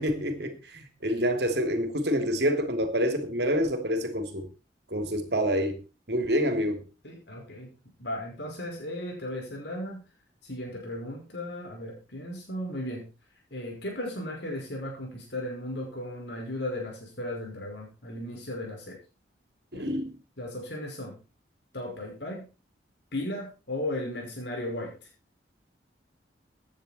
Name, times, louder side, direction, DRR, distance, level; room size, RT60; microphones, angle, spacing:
voice 1, 0.0-4.5 4.9-5.8 6.1-6.8 19.7-20.1, equal, 60° right, 3.1 m, -27 dB
voice 2, 7.0-7.7 8.0-10.0 10.4-13.1 13.5-19.0 19.7-19.9 20.4-21.2 21.7-22.5 23.1-24.9, left 1 dB, 70° left, 5.5 m, -36 dB
16.5 x 10.0 x 4.4 m
head